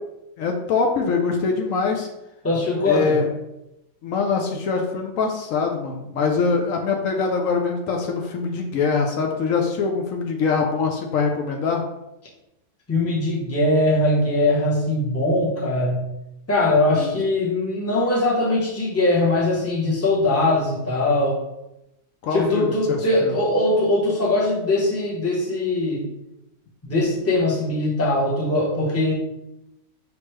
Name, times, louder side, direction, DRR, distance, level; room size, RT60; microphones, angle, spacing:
voice 1, 0.4-2.1 2.8-3.3 4.0-11.8 17.0-17.2 22.2-23.3, left 5 dB, 70° left, 2 dB, 0.9 m, -23 dB
voice 2, 2.4-3.2 12.9-16.0 16.5-21.4 22.3-26.1 26.8-29.1, left 2 dB, 15° left, -4 dB, 0.7 m, -21 dB
5.1 x 3.0 x 3.1 m, 0.91 s
omnidirectional pair, 1.5 m